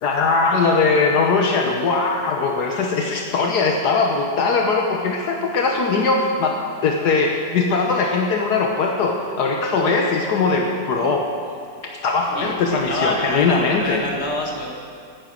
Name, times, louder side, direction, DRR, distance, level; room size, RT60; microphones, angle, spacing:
voice 1, 0.0-11.3 11.8-14.0, left 4 dB, 75° left, 1 dB, 1.5 m, -20 dB
voice 2, 12.3-14.7, left 1 dB, 40° left, 0 dB, 1.9 m, -27 dB
14.5 x 9.2 x 6.2 m, 2.2 s
omnidirectional pair, 1.8 m